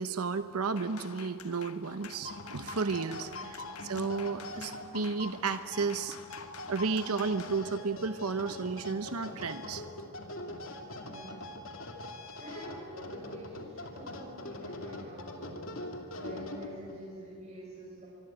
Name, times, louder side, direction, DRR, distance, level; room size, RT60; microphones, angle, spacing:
voice 1, 0.0-6.2 6.7-9.8, right 4 dB, 90° right, 10 dB, 0.9 m, -33 dB
sound 1, 0.8-7.6, left 7 dB, 85° left, 1.3 m, -49 dB
sound 2, 2.0-17.0, left 1 dB, 65° left, 2.6 m, -43 dB
voice 2, 11.0-11.5 12.4-15.6 16.1-18.1, right 1 dB, 30° right, -5 dB, 5.8 m, -47 dB
25.0 x 23.5 x 8.9 m, 2.5 s
head